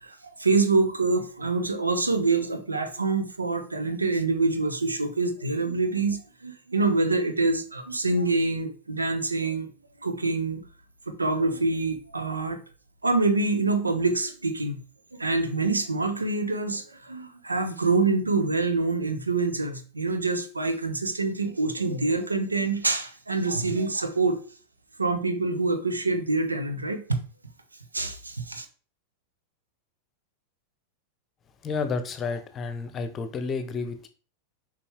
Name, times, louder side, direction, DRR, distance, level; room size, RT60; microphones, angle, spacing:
voice 1, 0.0-9.7 10.0-10.6 11.1-12.6 13.0-14.8 15.1-24.4 25.0-27.0 27.9-28.6, right 3 dB, 80° right, 7 dB, 1.1 m, -26 dB
voice 2, 31.6-34.1, left 4 dB, 25° left, 9 dB, 0.9 m, -31 dB
7.0 x 5.2 x 3.5 m, 0.38 s
figure-of-eight pair, 90°, 0 cm